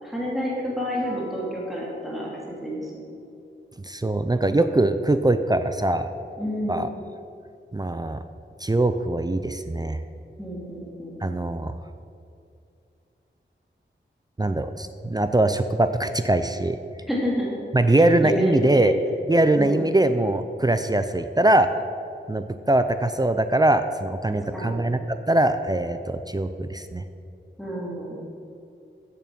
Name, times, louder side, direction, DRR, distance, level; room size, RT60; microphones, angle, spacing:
voice 1, 0.0-2.3 2.6-3.0 6.4-6.9 10.4-11.2 17.1-17.5 17.9-18.9 19.6-19.9 24.5-24.8 27.6-28.2, equal, ahead, -5 dB, 2.5 m, -29 dB
Guitar, 0.9-3.4, left 2 dB, 55° right, 2.8 m, -49 dB
voice 2, 3.8-6.1 6.7-6.9 7.7-8.2 8.6-10.0 11.2-11.7 14.4-16.8 17.7-18.9 19.3-21.7 22.3-25.0 25.3-27.0, right 2 dB, 20° right, 9 dB, 0.5 m, -22 dB
8.3 x 7.3 x 7.5 m, 2.5 s
wide cardioid pair, 80°, 20 cm